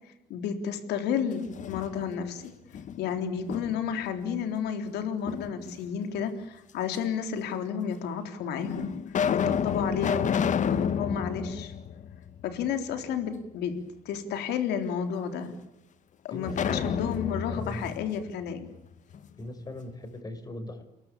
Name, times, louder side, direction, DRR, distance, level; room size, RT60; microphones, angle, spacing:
voice 1, 0.3-2.5 3.0-8.9 9.3-11.7 12.4-13.8 14.1-15.5 16.2-18.7, left 7 dB, 80° left, 7 dB, 3.7 m, -31 dB
sound 1, 1.3-2.3 2.7-4.0 5.3-6.1 6.9-7.0 7.9-8.0 8.6-12.7 13.0-13.1 16.4-19.2, left 7 dB, 45° left, 1.3 m, -30 dB
voice 2, 16.3-16.9 17.2-17.9 19.4-20.8, left 1 dB, 20° left, 8 dB, 6.0 m, -40 dB
29.5 x 22.0 x 8.8 m, 0.86 s
cardioid pair, 110°, 17 cm